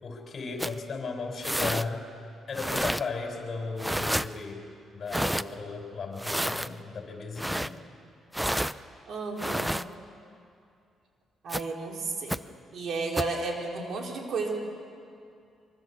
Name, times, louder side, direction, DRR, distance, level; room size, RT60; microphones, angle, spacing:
voice 1, 0.0-2.0 2.5-4.6 4.9-7.8, left 4 dB, 45° left, 3 dB, 5.0 m, -35 dB
sound 1, 0.6-0.8 1.4-1.9 2.5-3.0 3.8-4.3 5.1-5.4 6.2-6.7 7.4-7.7 8.3-8.7 9.4-9.8 11.5-11.6 12.3-12.4 13.2-13.3, equal, 5° right, 0.6 m, -29 dB
voice 2, 9.1-9.7 11.4-12.4 12.7-14.6, right 3 dB, 60° right, 0 dB, 4.3 m, -32 dB
25.0 x 23.5 x 7.1 m, 2.4 s
cardioid pair, 90°, 0 cm